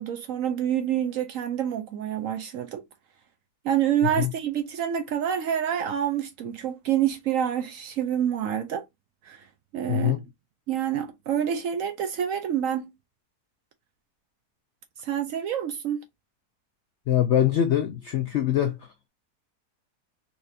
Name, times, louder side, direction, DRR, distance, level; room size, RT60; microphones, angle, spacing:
voice 1, 0.0-2.8 3.6-8.8 9.2-9.5 9.7-10.1 10.7-12.9 15.0-16.0, right 9 dB, 70° right, 0.8 m, -27 dB
voice 2, 9.9-10.2 17.1-18.9, left 10 dB, 75° left, 0.6 m, -23 dB
4.2 x 2.4 x 2.6 m
omnidirectional pair, 1.7 m